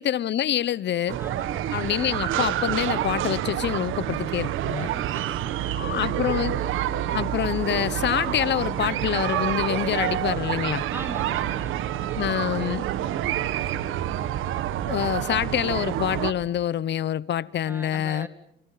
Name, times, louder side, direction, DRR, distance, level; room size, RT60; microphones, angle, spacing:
voice 1, 0.0-1.2 1.7-4.9 5.7-6.6 7.1-10.8 12.1-12.8 14.9-18.3, left 10 dB, 65° left, 1.1 m, -26 dB
sound 1, 1.1-16.3, right 12 dB, 85° right, 1.5 m, -28 dB
voice 2, 1.2-1.7 4.7-6.5 10.9-12.8 17.6-18.3, right 1 dB, 10° right, 3.5 m, -42 dB
30.0 x 29.5 x 5.9 m
cardioid pair, 90°, 20 cm